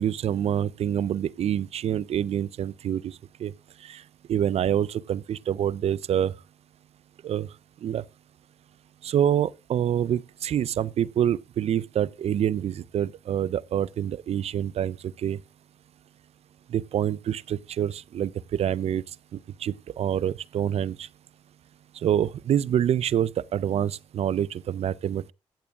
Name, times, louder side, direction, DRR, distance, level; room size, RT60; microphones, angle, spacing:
voice 1, 0.0-3.1 3.4-3.5 3.9-4.0 4.3-6.3 7.2-7.5 7.8-8.0 9.0-15.0 15.2-15.4 16.7-19.0 19.6-21.1 22.0-25.3, right 10 dB, 60° right, 0.5 m, -26 dB
15.0 x 8.5 x 2.5 m
supercardioid pair, 60°, 12 cm